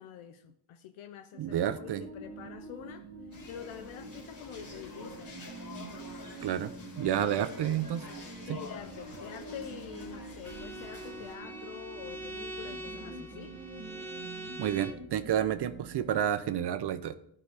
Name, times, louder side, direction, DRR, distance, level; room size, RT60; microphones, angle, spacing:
voice 1, 0.0-5.4 7.0-7.4 8.4-13.6 15.3-15.4, left 9 dB, 75° left, 0.6 m, -46 dB
sound 1, 1.3-16.1, right 3 dB, 20° right, 1.1 m, -47 dB
voice 2, 1.4-2.0 6.4-6.7 7.0-8.1 8.5-8.6 14.6-17.1, right 10 dB, 55° right, 0.5 m, -30 dB
sound 2, 3.3-11.4, left 3 dB, 45° left, 2.7 m, -48 dB
Bowed string instrument, 10.4-15.1, right 1 dB, 5° left, 0.9 m, -43 dB
10.5 x 4.9 x 3.3 m
cardioid pair, 105°, 50 cm